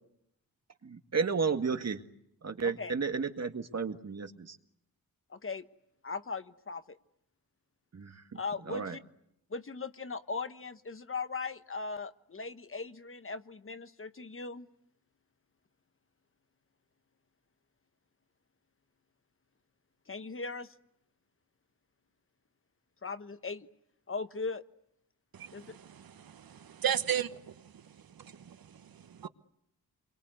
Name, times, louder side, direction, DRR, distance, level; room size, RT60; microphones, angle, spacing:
voice 1, 0.8-2.0 2.4-4.6 7.9-8.4 8.7-8.9, right 5 dB, 45° right, 7 dB, 1.9 m, -33 dB
voice 2, 2.6-2.9 5.3-5.7 6.0-7.0 8.3-9.0 9.5-14.7 20.1-20.7 23.0-23.7 24.1-24.6 25.5-25.8, left 4 dB, 35° left, 11 dB, 1.2 m, -39 dB
voice 3, 25.3-29.3, right 9 dB, 75° right, 12 dB, 1.2 m, -36 dB
29.5 x 23.5 x 8.1 m, 0.77 s
wide cardioid pair, 120°, 36 cm